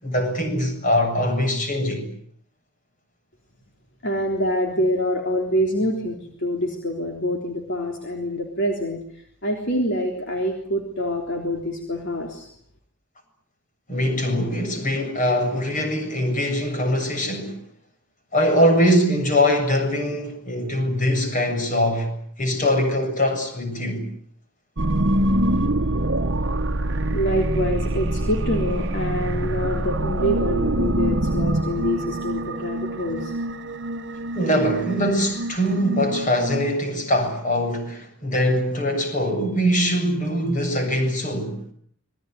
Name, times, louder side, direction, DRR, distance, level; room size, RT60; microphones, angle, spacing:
voice 1, 0.0-2.1 13.9-17.6 18.3-24.0 34.4-41.6, equal, 40° left, 7.6 m, -22 dB
voice 2, 4.0-12.5 27.1-33.3, equal, 55° left, 3.7 m, -26 dB
sound 1, 24.8-36.7, right 1 dB, 55° right, 1.1 m, -25 dB
26.5 x 21.5 x 9.6 m
head